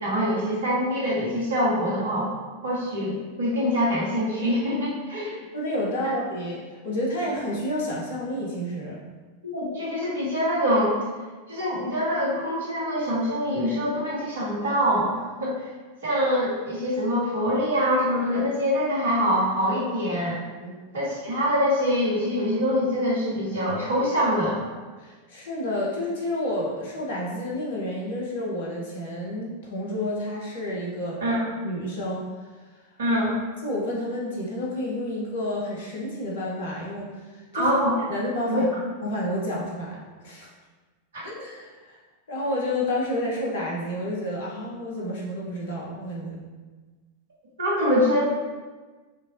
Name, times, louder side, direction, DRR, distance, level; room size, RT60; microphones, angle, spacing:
voice 1, 0.0-2.3 2.6-5.4 9.4-10.9 11.5-15.6 16.0-20.4 20.9-24.6 31.2-31.4 33.0-33.3 37.5-37.9 38.5-38.6 47.6-48.3, equal, 65° right, -5 dB, 1.3 m, -24 dB
voice 2, 5.5-9.0 20.6-20.8 25.0-31.4 31.6-32.3 33.6-37.7 38.1-38.7 39.0-40.5 41.2-42.0 42.3-46.4, left 1 dB, 60° left, -4 dB, 1.1 m, -30 dB
5.0 x 3.2 x 2.7 m, 1.3 s
figure-of-eight pair, 90°, 0 cm